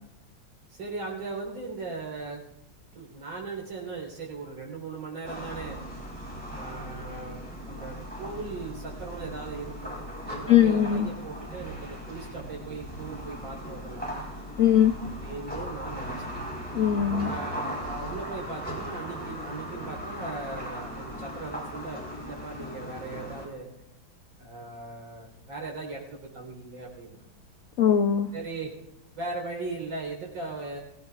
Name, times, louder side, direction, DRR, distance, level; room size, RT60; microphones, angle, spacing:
voice 1, 0.7-2.4 2.9-5.8 6.5-10.0 10.3-14.1 15.0-16.3 17.2-23.7 24.4-27.3 28.3-28.8 29.1-30.8, right 3 dB, 75° right, -2 dB, 4.6 m, -38 dB
sound 1, 5.2-23.5, equal, 5° left, 4.0 m, -38 dB
voice 2, 10.5-11.1 14.6-14.9 16.7-17.3 27.8-28.3, left 9 dB, 85° left, 7 dB, 0.7 m, -20 dB
22.5 x 16.0 x 2.4 m, 0.85 s
omnidirectional pair, 2.2 m